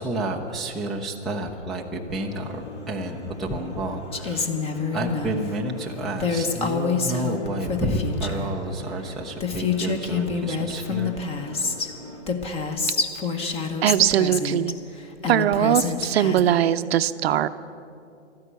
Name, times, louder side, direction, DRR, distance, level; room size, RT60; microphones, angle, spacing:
voice 1, 0.0-4.5 4.9-11.2 11.4-11.5, right 1 dB, ahead, -4 dB, 0.4 m, -30 dB
sound 1, 2.1-12.2, left 2 dB, 70° left, 3.2 m, -43 dB
Female speech woman speaking, 4.1-5.3 6.2-8.5 9.1-9.2 9.4-11.9 12.3-14.7 15.2-16.4, left 4 dB, 15° left, 0.9 m, -27 dB
voice 2, 13.8-14.7 15.3-17.5, right 11 dB, 55° right, 13 dB, 0.6 m, -21 dB
13.0 x 10.5 x 8.1 m, 2.5 s
hypercardioid pair, 130°, 36 cm